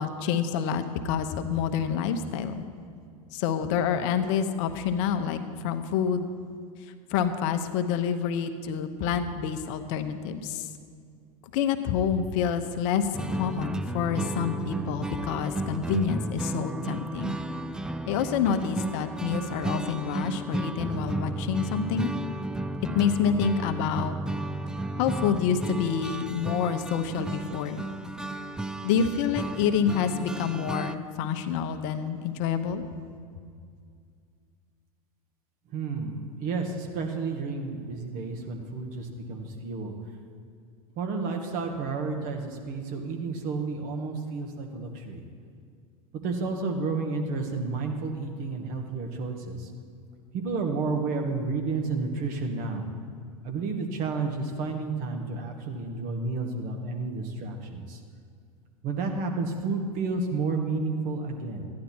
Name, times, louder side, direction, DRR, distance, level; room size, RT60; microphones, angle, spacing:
voice 1, 0.0-2.6 3.3-6.3 7.1-10.7 11.5-17.4 18.1-22.1 22.9-24.1 25.0-27.8 28.8-32.8, left 7 dB, 60° left, 8 dB, 0.9 m, -28 dB
sound 1, 13.1-30.9, right 2 dB, 5° right, 0.3 m, -33 dB
voice 2, 35.7-39.9 41.0-45.2 46.1-49.7 50.3-52.8 53.4-58.0 58.8-61.7, right 4 dB, 50° right, 3 dB, 1.7 m, -31 dB
13.5 x 10.5 x 4.5 m, 2.2 s
hypercardioid pair, 95°, 18 cm